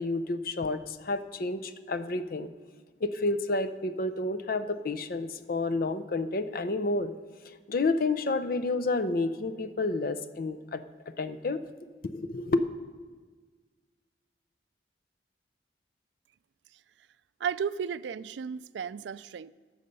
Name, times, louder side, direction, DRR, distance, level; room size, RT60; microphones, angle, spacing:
voice 1, 0.0-2.5 3.0-7.1 7.7-10.8 11.2-11.6 12.0-12.6, left 2 dB, 55° left, 0.6 m, -30 dB
voice 2, 17.4-19.5, right 7 dB, 75° right, 0.3 m, -34 dB
19.0 x 6.5 x 5.4 m
head